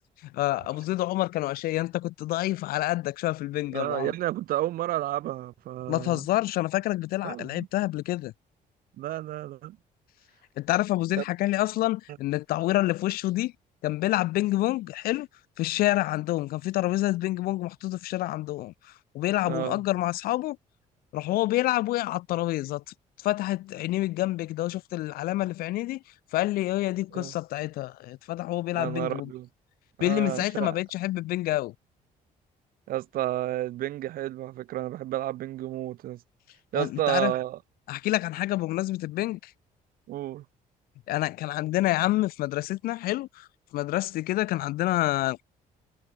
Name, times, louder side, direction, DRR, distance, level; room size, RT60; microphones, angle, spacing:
voice 1, 0.3-4.1 5.9-8.3 10.6-13.5 13.8-15.3 15.6-18.7 19.1-20.6 21.1-22.8 23.2-26.0 26.3-29.3 30.0-31.7 36.7-37.3 37.9-39.5 41.1-43.5 43.7-45.4, left 17 dB, 80° left, 0.8 m, -27 dB
voice 2, 3.7-6.3 7.2-7.7 9.0-9.8 11.2-11.3 19.5-19.8 27.1-27.3 28.7-29.5 30.0-30.8 32.9-36.2 36.7-37.6 40.1-40.4, right 14 dB, 75° right, 3.7 m, -31 dB
cardioid pair, 140°, 15 cm